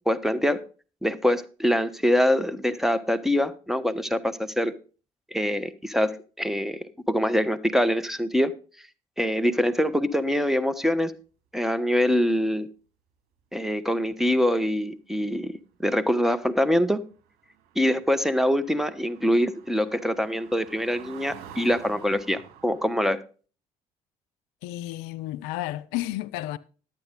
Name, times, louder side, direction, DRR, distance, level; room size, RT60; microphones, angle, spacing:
voice 1, 0.1-0.6 1.0-4.7 5.3-6.1 6.4-8.5 9.2-11.1 11.5-12.7 13.5-15.5 15.8-17.0 17.7-23.2, equal, ahead, 1.1 m, -24 dB
sound 1, 16.6-16.7 16.9-22.9, right 8 dB, 65° right, 2.2 m, -48 dB
voice 2, 24.6-26.6, left 15 dB, 70° left, 0.5 m, -32 dB
11.5 x 8.7 x 3.9 m
hypercardioid pair, 55°, 18 cm